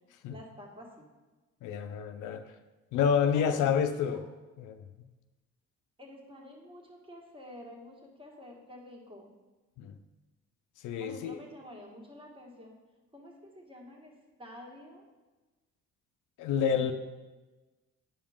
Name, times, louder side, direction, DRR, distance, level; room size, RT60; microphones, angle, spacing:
voice 1, 0.3-1.1 3.3-4.2 6.0-9.3 11.0-12.7 13.1-15.0 16.7-16.9, left 1 dB, 15° right, -1 dB, 1.7 m, -49 dB
voice 2, 1.6-2.5 2.9-4.2 4.6-4.8 9.8-9.9 10.8-11.4 16.4-16.9, left 7 dB, 85° left, 7 dB, 0.5 m, -28 dB
10.5 x 5.0 x 3.6 m, 1.2 s
cardioid pair, 90°, 30 cm